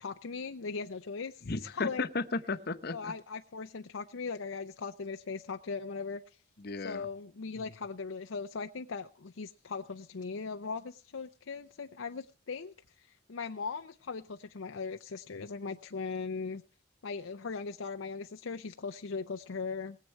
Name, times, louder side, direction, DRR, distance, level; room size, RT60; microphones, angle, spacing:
voice 1, 0.0-1.4 1.8-2.1 2.9-6.2 6.8-16.6 17.0-20.0, left 4 dB, 75° left, 6 dB, 0.6 m, -39 dB
voice 2, 1.4-3.1 6.6-7.1, left 3 dB, 50° left, 9 dB, 1.0 m, -34 dB
20.5 x 7.6 x 4.6 m, 0.43 s
head